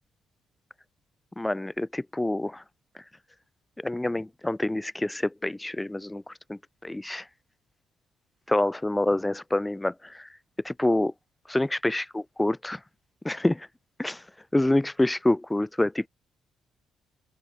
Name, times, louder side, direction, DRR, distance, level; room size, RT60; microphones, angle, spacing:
voice 1, 1.4-2.6 3.8-7.3 8.5-10.3 10.6-11.1 11.5-12.0 12.4-12.8 13.2-13.7 14.0-14.2 14.5-16.1, left 1 dB, 10° left, 3.5 m, -27 dB
open air
cardioid pair, 90°, 0 cm